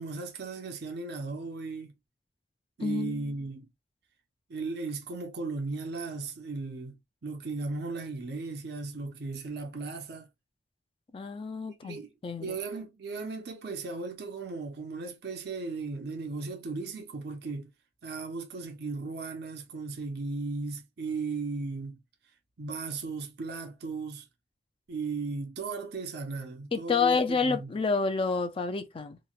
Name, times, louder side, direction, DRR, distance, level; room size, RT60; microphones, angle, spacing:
voice 1, 0.0-1.9 2.8-3.7 4.5-10.3 11.8-12.1 12.4-17.7 18.0-22.0 22.6-24.3 24.9-27.7, right 3 dB, 60° right, 0.6 m, -36 dB
voice 2, 2.8-3.3 11.1-12.0 12.2-12.6 26.7-29.2, left 4 dB, 30° left, 0.4 m, -29 dB
3.0 x 2.1 x 2.3 m
head